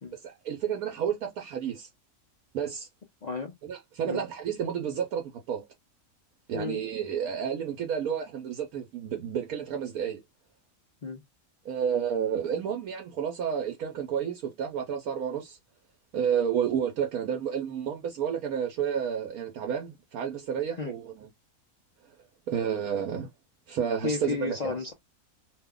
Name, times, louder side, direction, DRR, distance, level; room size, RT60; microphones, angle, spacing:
voice 1, 0.1-1.9 2.5-2.9 3.6-5.6 6.5-10.2 11.6-15.6 16.1-21.3 22.5-23.3 23.7-24.8, right 8 dB, 85° right, 1.2 m, -31 dB
voice 2, 3.2-3.5 4.0-4.2 6.5-6.8 11.0-11.2 20.8-20.9 24.0-24.9, left 4 dB, 60° left, 0.4 m, -33 dB
2.8 x 2.2 x 3.6 m
omnidirectional pair, 1.5 m